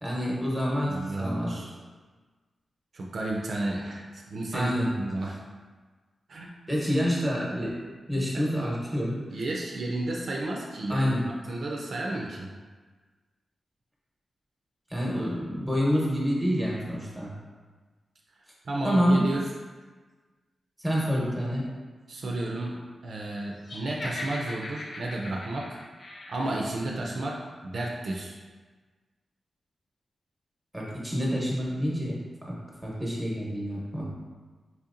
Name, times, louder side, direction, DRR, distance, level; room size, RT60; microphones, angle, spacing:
voice 1, 0.0-1.6 4.5-4.9 6.7-7.7 8.1-9.4 10.9-11.2 14.9-17.3 18.8-19.3 20.8-21.6 30.7-32.6 32.8-34.0, equal, ahead, -5 dB, 0.9 m, -27 dB
voice 2, 0.9-1.7 2.9-5.4 6.3-6.5 8.1-8.5 9.3-11.1 11.5-12.5 18.6-19.4 22.1-22.8 23.0-25.8 26.3-28.3, right 2 dB, 60° right, -2 dB, 0.4 m, -32 dB
Laughter, 23.6-26.7, left 1 dB, 50° left, 0.5 m, -39 dB
4.2 x 2.8 x 2.5 m, 1.4 s
wide cardioid pair, 125°, 0 cm